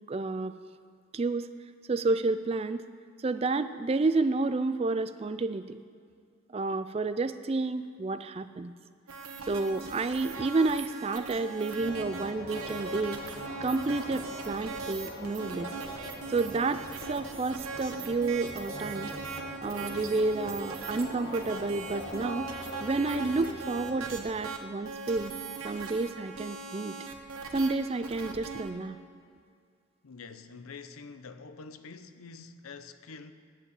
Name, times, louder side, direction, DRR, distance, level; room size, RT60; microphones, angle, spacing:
voice 1, 0.1-0.5 1.1-1.5 1.9-2.8 3.2-5.8 6.5-8.7 9.5-13.2 13.6-15.7 16.3-19.1 19.6-22.5 22.8-25.3 25.6-27.0 27.5-29.0, right 3 dB, 30° right, 0.3 m, -30 dB
sound 1, 9.1-28.7, right 4 dB, 85° right, 1.2 m, -40 dB
sound 2, 11.8-24.3, left 1 dB, 55° left, 1.4 m, -44 dB
voice 2, 30.0-33.3, left 4 dB, 85° left, 0.6 m, -46 dB
9.7 x 8.3 x 8.2 m
head